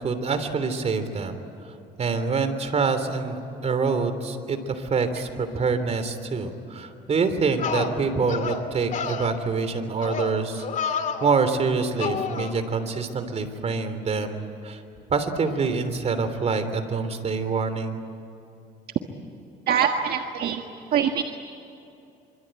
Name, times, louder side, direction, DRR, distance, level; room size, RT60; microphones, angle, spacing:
voice 1, 0.0-1.4 2.0-14.8 15.1-18.0, right 4 dB, 40° right, 9 dB, 3.2 m, -26 dB
sound 1, 7.1-7.2 7.6-7.9 8.3-8.6 8.9-9.3 10.0-10.3 10.6-11.3 12.0-12.5, left 6 dB, 50° left, 2.6 m, -29 dB
voice 2, 19.7-20.6 20.9-21.2, right 8 dB, 65° right, 4 dB, 1.6 m, -23 dB
25.5 x 25.5 x 9.1 m, 2.8 s
cardioid pair, 110°, 17 cm